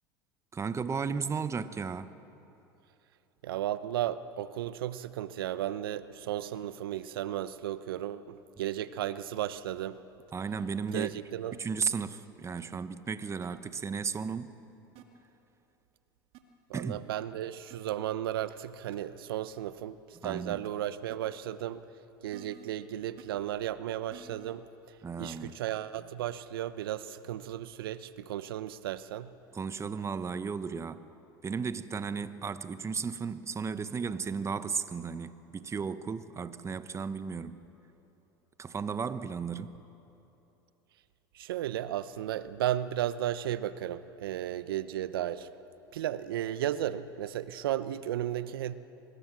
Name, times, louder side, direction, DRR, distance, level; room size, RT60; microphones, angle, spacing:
voice 1, 0.5-2.1 10.3-11.1 11.5-14.5 16.7-17.0 20.2-20.6 25.0-25.6 29.5-31.0 31.4-37.6 38.6-39.7, right 5 dB, 25° right, 1.0 m, -34 dB
voice 2, 3.4-10.0 10.9-11.6 16.7-21.9 22.2-29.3 41.3-45.5 45.9-48.7, right 12 dB, 80° right, 0.8 m, -34 dB
sound 1, 9.3-9.5 10.9-11.0 11.5-11.6 12.6-12.7 13.4-13.5 15.0-15.1 16.3-16.4 17.7-17.8 18.6-18.7 18.9-19.0 20.6-20.7 21.1-21.2 22.3-22.7 23.2-23.3 24.1-24.5 25.4-25.5, right 9 dB, 60° right, 2.3 m, -51 dB
24.5 x 20.0 x 7.6 m
hypercardioid pair, 85°, 12 cm